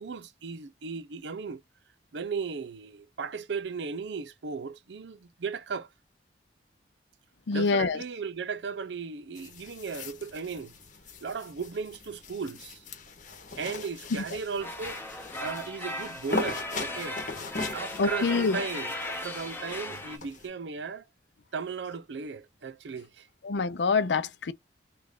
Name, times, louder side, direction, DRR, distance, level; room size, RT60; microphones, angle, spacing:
voice 1, 0.0-1.6 2.1-5.9 7.5-10.7 11.2-12.8 13.6-17.2 17.7-21.0 21.5-23.3, right 5 dB, 75° right, 0.5 m, -36 dB
voice 2, 7.5-8.0 14.3-14.4 18.0-18.6 23.4-24.5, left 4 dB, 75° left, 0.5 m, -26 dB
sound 1, 9.3-20.5, left 3 dB, 45° left, 0.9 m, -40 dB
sound 2, 14.6-20.2, left 1 dB, 10° left, 0.7 m, -37 dB
3.2 x 2.5 x 3.5 m
head